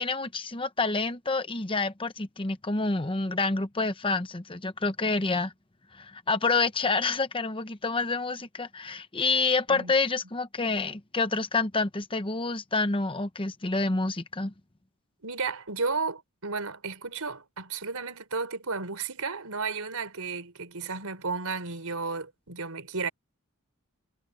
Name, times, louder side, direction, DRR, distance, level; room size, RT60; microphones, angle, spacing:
voice 1, 0.0-5.5 5.9-14.5, left 3 dB, 25° left, 0.9 m, -28 dB
voice 2, 15.2-23.1, right 4 dB, 80° right, 4.2 m, -33 dB
head